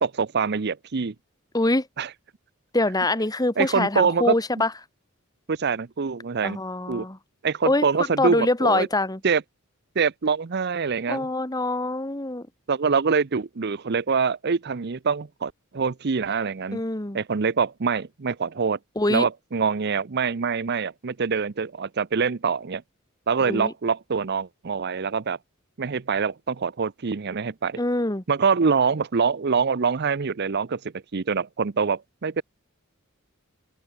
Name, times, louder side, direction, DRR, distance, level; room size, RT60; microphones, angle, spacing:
voice 1, 0.0-1.1 2.0-2.1 3.6-4.3 5.5-6.6 6.9-7.1 7.4-8.9 9.2-9.4 10.0-11.3 12.7-16.8 17.1-18.8 19.1-22.8 23.3-25.4 25.8-27.8 28.3-30.8 31.1-32.4, right 5 dB, 50° right, 0.6 m, -24 dB
voice 2, 1.5-1.9 2.7-4.7 6.4-7.2 7.6-7.9 8.2-9.2 11.1-12.5 16.7-17.2 18.9-19.2 23.4-23.7 27.8-28.2, left 2 dB, 20° left, 1.7 m, -24 dB
head